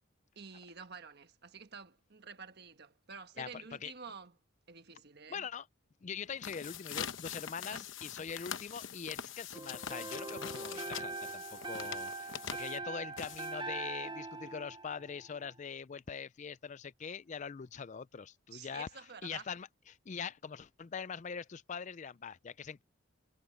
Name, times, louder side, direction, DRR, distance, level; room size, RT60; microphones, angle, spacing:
voice 1, 0.3-4.3 4.7-5.5 7.7-7.9 18.5-19.5, right 5 dB, 50° right, 1.3 m, -50 dB
voice 2, 3.4-3.9 5.3-5.7 6.0-18.9 19.2-22.8, left 6 dB, 35° left, 0.4 m, -43 dB
sound 1, 6.3-13.8, left 8 dB, 65° left, 0.9 m, -43 dB
sound 2, 9.5-15.5, right 3 dB, 25° right, 0.7 m, -42 dB
head